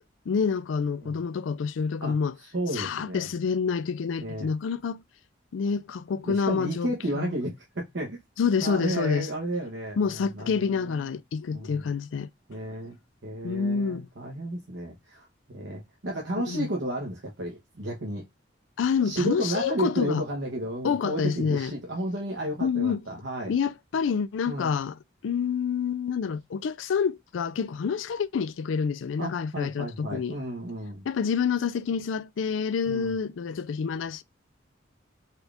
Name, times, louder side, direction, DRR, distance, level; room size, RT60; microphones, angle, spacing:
voice 1, 0.3-2.3 2.7-5.0 5.5-7.3 8.4-9.3 10.0-12.3 13.4-14.1 16.5-16.7 18.8-20.2 20.8-21.7 22.6-23.0 23.5-30.4 31.1-34.2, left 6 dB, 85° left, 0.4 m, -28 dB
voice 2, 2.4-3.3 4.2-4.5 6.2-8.2 8.6-11.0 11.5-11.9 12.5-13.0 13.2-18.2 19.0-23.5 24.5-24.7 29.2-31.0 32.9-33.1, right 1 dB, 70° right, 1.0 m, -32 dB
4.3 x 2.4 x 3.3 m
head